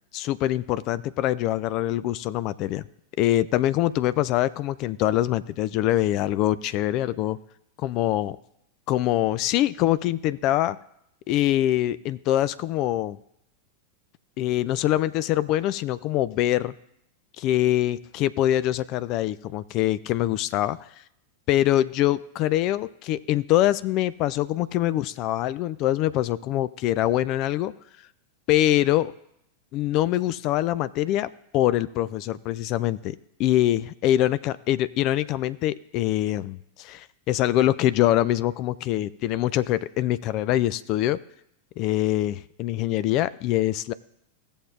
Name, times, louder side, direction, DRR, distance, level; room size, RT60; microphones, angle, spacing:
voice 1, 0.1-2.8 3.2-7.4 7.8-8.4 8.9-10.8 11.3-13.2 14.4-16.7 17.4-20.9 21.5-27.7 28.5-29.1 29.7-41.2 41.8-43.9, left 14 dB, 40° left, 16 dB, 0.3 m, -24 dB
17.5 x 6.9 x 2.6 m, 0.76 s
figure-of-eight pair, 90°, 0 cm